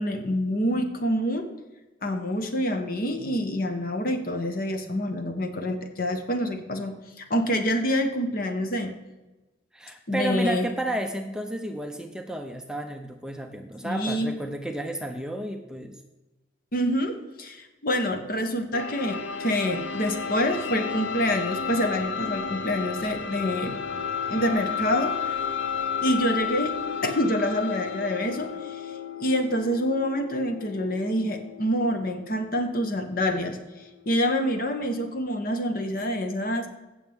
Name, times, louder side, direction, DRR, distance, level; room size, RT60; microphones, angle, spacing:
voice 1, 0.0-1.5 2.0-8.9 10.1-10.7 13.8-14.3 16.7-17.1 17.4-23.8 24.3-25.3 26.0-26.7 27.0-28.9 29.2-33.6 34.1-36.7, equal, 50° left, 6 dB, 1.1 m, -27 dB
voice 2, 9.7-16.0, right 1 dB, 5° right, 5 dB, 0.6 m, -32 dB
sound 1, 18.7-34.3, left 6 dB, 75° left, 0.7 m, -33 dB
15.5 x 7.1 x 3.5 m, 1.1 s
head